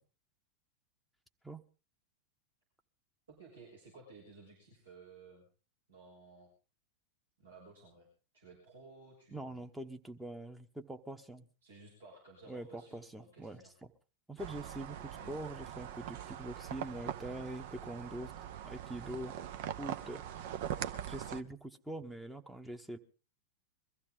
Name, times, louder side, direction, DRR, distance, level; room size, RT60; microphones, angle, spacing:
voice 1, 3.3-5.4 5.9-6.5 7.4-8.1 8.3-9.6 11.6-13.7 15.1-15.4, right 3 dB, 70° right, -3 dB, 6.5 m, -56 dB
voice 2, 9.3-11.5 12.5-13.6 14.3-18.3 18.6-19.3 19.8-20.2 21.1-23.0, right 1 dB, 5° right, 5 dB, 1.1 m, -44 dB
sound 1, 14.4-21.4, right 10 dB, 50° right, 0.8 m, -42 dB
22.5 x 14.5 x 3.8 m, 0.36 s
figure-of-eight pair, 90°, 0 cm